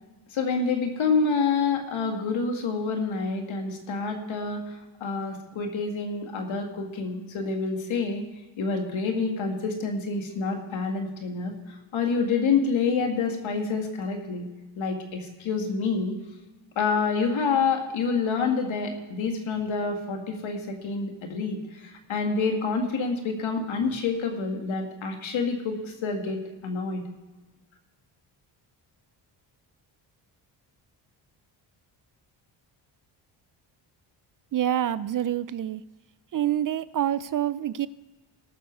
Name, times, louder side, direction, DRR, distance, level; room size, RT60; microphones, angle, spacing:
voice 1, 0.3-8.2 8.6-14.5 14.8-16.2 16.8-27.0, left 4 dB, 70° left, 3 dB, 2.2 m, -27 dB
voice 2, 34.5-35.8 36.3-37.9, right 11 dB, 45° right, 17 dB, 0.4 m, -26 dB
18.5 x 7.0 x 4.7 m, 1.2 s
cardioid pair, 70°, 49 cm